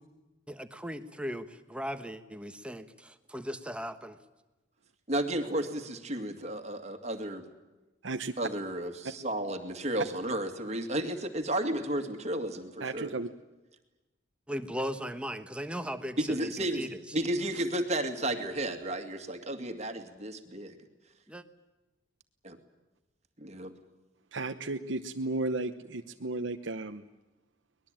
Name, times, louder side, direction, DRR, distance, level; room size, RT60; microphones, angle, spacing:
voice 1, 0.5-4.2 14.5-16.9 21.3-21.4, equal, 5° right, 9 dB, 1.3 m, -38 dB
voice 2, 5.1-7.4 8.4-13.1 16.2-16.9 17.1-20.8 22.4-22.6 23.4-23.7, right 1 dB, 35° right, 5 dB, 2.2 m, -33 dB
voice 3, 8.0-8.3 12.8-13.3 24.3-27.1, right 2 dB, 70° right, 5 dB, 0.9 m, -34 dB
24.0 x 20.5 x 8.9 m, 1.1 s
head